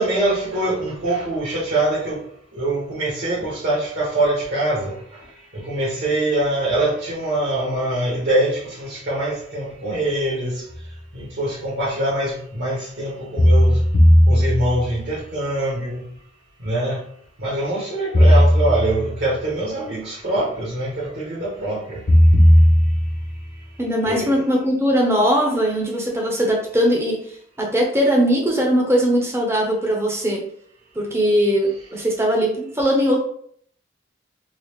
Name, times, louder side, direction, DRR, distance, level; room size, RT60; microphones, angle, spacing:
voice 1, 0.0-2.2 2.5-4.9 5.6-10.6 11.1-13.8 14.3-16.0 16.6-17.0 17.4-22.0 24.0-24.4, right 1 dB, 65° right, -10 dB, 1.5 m, -23 dB
sound 1, 10.7-10.8 13.4-15.0 18.1-19.2 22.1-23.4, equal, 45° left, 0.5 m, -15 dB
voice 2, 23.8-27.2 27.6-30.4 31.0-33.2, equal, 15° right, -1 dB, 0.7 m, -20 dB
3.9 x 2.4 x 3.1 m, 0.63 s
head